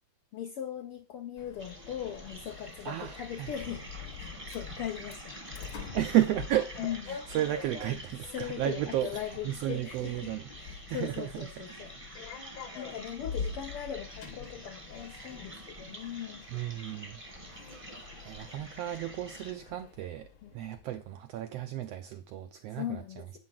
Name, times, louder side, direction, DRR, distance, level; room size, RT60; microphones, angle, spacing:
voice 1, 0.3-3.8 4.2-5.4 6.8-7.2 8.3-10.3 10.6-12.0 12.8-16.4 20.4-20.5 22.7-23.4, left 10 dB, 75° left, 1.3 m, -39 dB
Sliding door, 1.4-21.0, left 6 dB, 55° left, 1.5 m, -45 dB
sound 1, 1.6-19.5, right 1 dB, 20° right, 0.8 m, -48 dB
voice 2, 2.8-3.5 5.9-10.5 10.9-12.0 16.5-17.2 17.7-20.3 20.5-23.2, right 13 dB, 80° right, 1.4 m, -33 dB
8.5 x 6.4 x 7.3 m
omnidirectional pair, 3.4 m